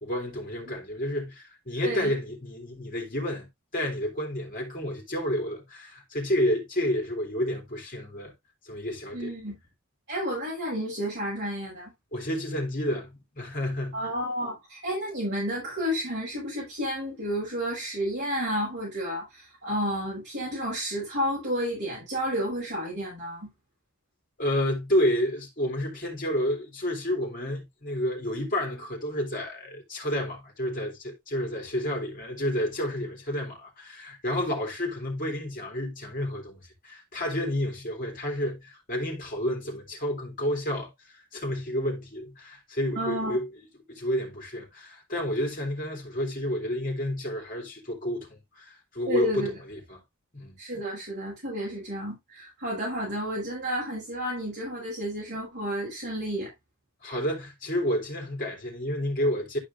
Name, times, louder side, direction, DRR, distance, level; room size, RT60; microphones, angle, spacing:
voice 1, 0.0-3.5 3.7-8.3 8.6-9.3 12.1-14.0 24.4-43.5 43.9-50.0 50.3-50.6 57.0-59.6, equal, 40° left, 3.1 m, -30 dB
voice 2, 9.1-9.6 10.1-11.9 13.9-23.5 43.0-43.4 49.1-49.5 50.6-56.5, equal, 50° right, 5.4 m, -31 dB
12.0 x 5.0 x 2.6 m
head